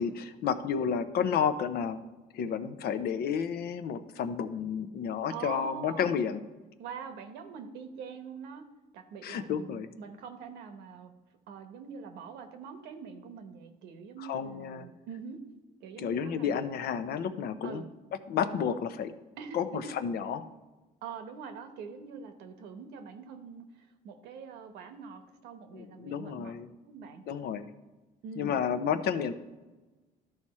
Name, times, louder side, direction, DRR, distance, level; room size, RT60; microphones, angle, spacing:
voice 1, 0.0-2.0 2.3-6.4 9.2-9.9 14.3-14.9 16.0-17.8 18.3-19.1 19.5-19.7 20.0-20.4 25.7-26.7 27.3-27.7 28.4-29.3, left 7 dB, 65° left, 10 dB, 0.7 m, -31 dB
voice 2, 5.3-6.3 6.8-8.7 8.9-11.1 11.5-15.4 15.8-16.7 17.6-17.9 19.4-20.0 21.0-26.5 26.8-27.2 28.2-28.6, right 6 dB, 90° right, 7 dB, 1.1 m, -44 dB
13.0 x 4.9 x 4.3 m, 1.2 s
cardioid pair, 110°, 17 cm